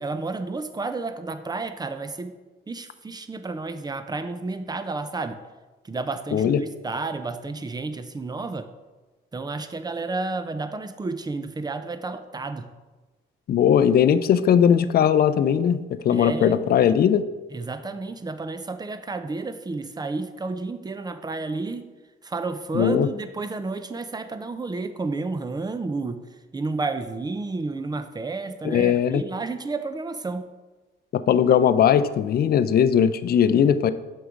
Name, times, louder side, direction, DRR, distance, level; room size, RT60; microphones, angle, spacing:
voice 1, 0.0-2.3 2.7-5.4 5.8-8.7 9.3-12.7 16.1-16.6 17.5-21.9 22.2-26.2 26.5-30.5, right 3 dB, 20° right, 10 dB, 0.6 m, -31 dB
voice 2, 13.5-15.8 16.0-17.2 22.7-23.1 28.6-29.2 31.1-33.9, left 8 dB, 50° left, 13 dB, 0.4 m, -19 dB
6.4 x 4.7 x 5.0 m, 1.2 s
cardioid pair, 90°, 20 cm